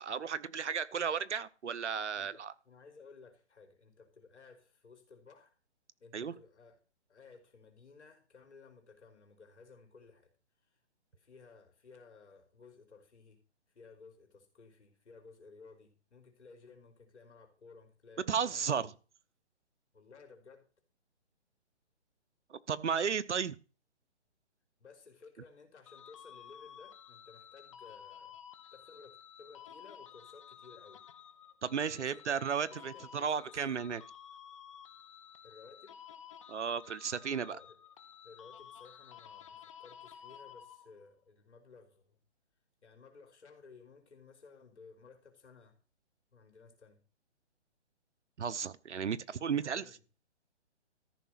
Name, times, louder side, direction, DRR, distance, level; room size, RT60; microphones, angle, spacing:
voice 1, 0.0-2.5 6.1-6.3 18.2-18.9 22.5-23.6 31.6-34.0 36.5-37.6 48.4-49.8, right 7 dB, 90° right, 0.9 m, -34 dB
voice 2, 2.1-5.5 6.0-6.8 7.1-10.3 10.7-10.8 11.1-13.4 13.7-18.9 19.9-20.6 24.8-28.4 28.7-31.0 32.0-32.4 32.7-33.7 35.4-36.0 37.5-37.8 38.2-42.2 42.8-45.8 46.3-47.0 49.5-50.0, left 4 dB, 80° left, 3.7 m, -57 dB
sound 1, 25.9-41.1, left 9 dB, 30° left, 0.7 m, -53 dB
13.5 x 5.8 x 5.9 m
hypercardioid pair, 160°, 34 cm